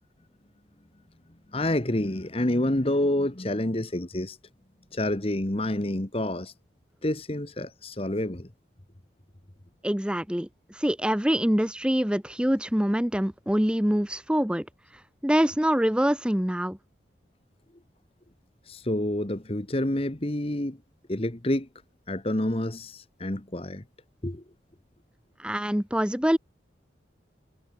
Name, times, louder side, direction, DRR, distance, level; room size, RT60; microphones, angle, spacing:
voice 1, 1.5-4.4 4.9-6.5 7.0-8.5 18.7-20.8 21.1-21.7 22.1-23.8 24.2-24.4, left 1 dB, 30° left, 1.4 m, -28 dB
voice 2, 9.8-14.6 15.2-16.8 25.4-26.4, equal, 5° right, 0.8 m, -25 dB
head